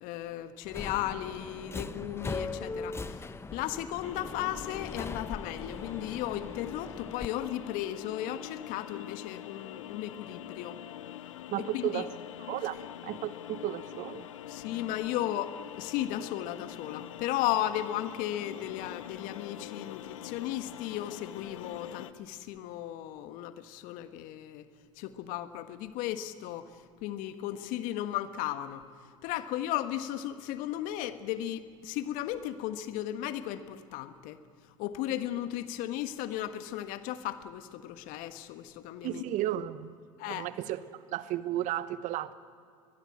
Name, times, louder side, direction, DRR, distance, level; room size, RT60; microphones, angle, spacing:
voice 1, 0.0-10.8 11.6-12.0 14.5-24.6 25.0-28.9 29.2-34.4 34.8-39.2 40.2-40.5, left 12 dB, 55° left, 10 dB, 1.4 m, -35 dB
Subway metro underground, 0.6-7.3, left 3 dB, 15° left, 0.9 m, -40 dB
sound 1, 4.0-22.1, left 12 dB, 75° left, 0.9 m, -44 dB
voice 2, 11.5-12.1 12.5-14.3 39.0-39.9 40.3-40.8 41.1-42.3, right 12 dB, 50° right, 14 dB, 1.1 m, -33 dB
22.0 x 21.0 x 8.8 m, 2.2 s
hypercardioid pair, 80°, 17 cm